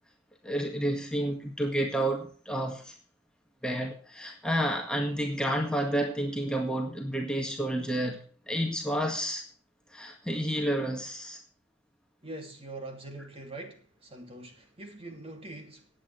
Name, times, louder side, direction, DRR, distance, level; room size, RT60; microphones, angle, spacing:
voice 1, 0.4-3.0 3.6-9.4 9.9-11.4, right 1 dB, 5° left, 1.8 m, -30 dB
voice 2, 12.2-15.9, right 2 dB, 30° right, 2.7 m, -43 dB
19.0 x 8.8 x 3.3 m
head